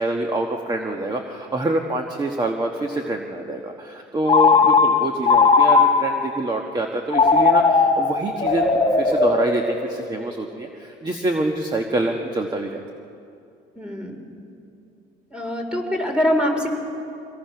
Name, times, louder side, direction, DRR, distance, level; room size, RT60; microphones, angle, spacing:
voice 1, 0.0-12.8, right 2 dB, 25° right, 3 dB, 1.3 m, -26 dB
Telephone, 4.3-6.3 7.1-10.2, left 4 dB, 30° left, 2.2 m, -18 dB
voice 2, 13.8-14.1 15.3-16.7, left 1 dB, 5° right, 2 dB, 3.5 m, -23 dB
25.0 x 18.0 x 5.9 m, 2.6 s
cardioid pair, 110°, 18 cm